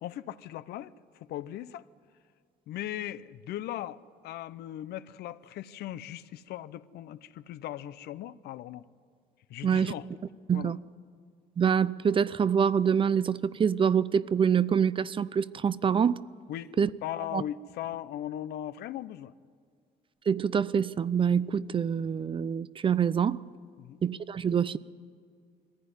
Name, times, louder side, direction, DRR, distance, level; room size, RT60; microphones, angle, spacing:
voice 1, 0.0-1.8 2.7-4.0 4.2-8.8 9.5-10.1 10.5-10.7 16.5-16.8 17.0-19.3 23.8-24.0, left 12 dB, 75° left, 0.7 m, -38 dB
voice 2, 9.6-9.9 10.5-10.8 11.6-16.2 16.8-16.9 17.3-17.4 20.3-23.4 24.0-24.8, right 7 dB, 30° right, 0.5 m, -25 dB
21.5 x 15.0 x 9.8 m
cardioid pair, 110°, 17 cm